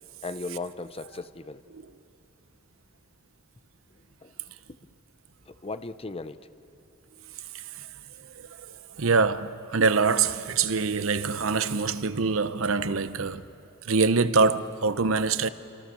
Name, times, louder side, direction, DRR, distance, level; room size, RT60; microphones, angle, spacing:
voice 1, 0.2-1.6 4.2-4.3 5.6-6.4, left 3 dB, 30° left, 0.7 m, -36 dB
voice 2, 7.5-7.9 8.6-13.5 13.8-15.5, right 4 dB, 85° right, 0.8 m, -24 dB
28.5 x 26.0 x 7.0 m
head